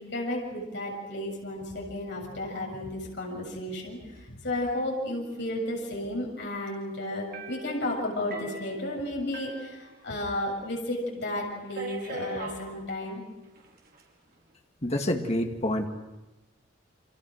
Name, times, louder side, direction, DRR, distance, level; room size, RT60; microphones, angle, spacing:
voice 1, 0.0-13.2, left 1 dB, 60° left, -1 dB, 7.0 m, -33 dB
sound 1, 7.3-10.5 10.8-10.9 11.7-12.6 13.5-14.0, right 1 dB, 50° right, 4.9 m, -41 dB
voice 2, 14.8-15.9, left 1 dB, 35° left, 3 dB, 2.0 m, -27 dB
30.0 x 26.0 x 6.5 m, 1.1 s
head